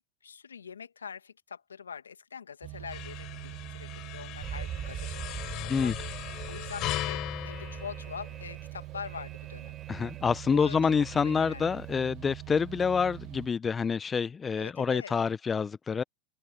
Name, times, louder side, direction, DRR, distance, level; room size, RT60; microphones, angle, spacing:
voice 1, 0.2-5.9 6.5-9.8 10.5-11.7 14.6-15.1, left 7 dB, 85° left, 1.8 m, -44 dB
sound 1, 2.6-13.5, right 21 dB, 50° right, 1.1 m, -43 dB
sound 2, 2.9-8.7, left 18 dB, 50° left, 4.1 m, -38 dB
Alarm, 4.4-12.1, right 8 dB, 30° right, 4.7 m, -44 dB
voice 2, 9.9-16.0, left 5 dB, 25° left, 0.8 m, -27 dB
hypercardioid pair, 85°, 0 cm